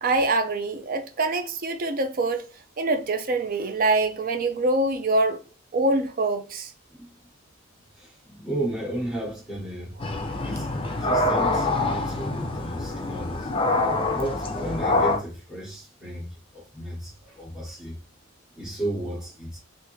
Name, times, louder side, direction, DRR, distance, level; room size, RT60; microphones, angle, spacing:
voice 1, 0.0-2.4 2.8-5.4 5.7-6.7, right 2 dB, 45° right, 0.5 m, -24 dB
voice 2, 8.0-9.9 10.4-13.5 14.1-16.3 16.5-18.0 18.6-19.6, right 1 dB, 5° right, 1.0 m, -33 dB
sound 1, 10.0-15.2, left 2 dB, 25° left, 0.4 m, -25 dB
3.5 x 2.5 x 3.0 m
head